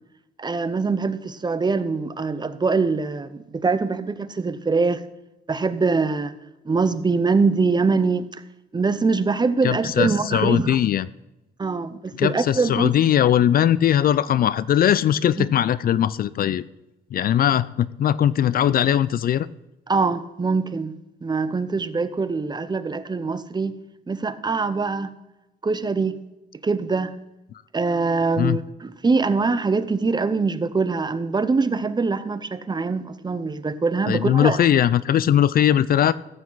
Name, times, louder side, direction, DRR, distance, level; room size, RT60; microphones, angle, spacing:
voice 1, 0.4-5.0 5.5-6.3 6.6-8.3 8.7-10.8 11.6-12.9 15.4-15.5 19.9-20.9 21.2-23.8 24.1-25.1 25.6-26.2 26.6-27.1 27.7-34.7, right 4 dB, 25° right, 0.7 m, -23 dB
voice 2, 9.6-11.1 12.2-16.6 17.1-19.5 28.4-28.6 34.1-36.1, left 10 dB, 55° left, 0.4 m, -20 dB
14.0 x 8.3 x 4.0 m
cardioid pair, 90°, 18 cm